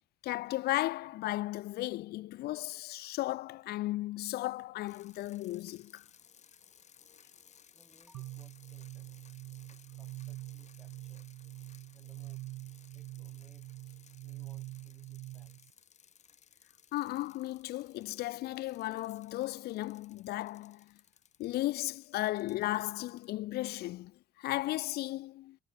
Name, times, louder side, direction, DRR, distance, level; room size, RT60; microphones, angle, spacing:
voice 1, 0.2-6.0 16.9-20.9 21.4-25.6, left 17 dB, 70° left, 0.6 m, -35 dB
sound 1, 4.9-23.3, left 8 dB, 45° left, 3.8 m, -61 dB
voice 2, 7.7-9.2 9.7-11.3 11.9-12.5 12.9-13.7 14.2-15.8, equal, ahead, 5.2 m, -66 dB
sound 2, 8.1-15.7, right 18 dB, 75° right, 0.6 m, -45 dB
cardioid pair, 110°, 17 cm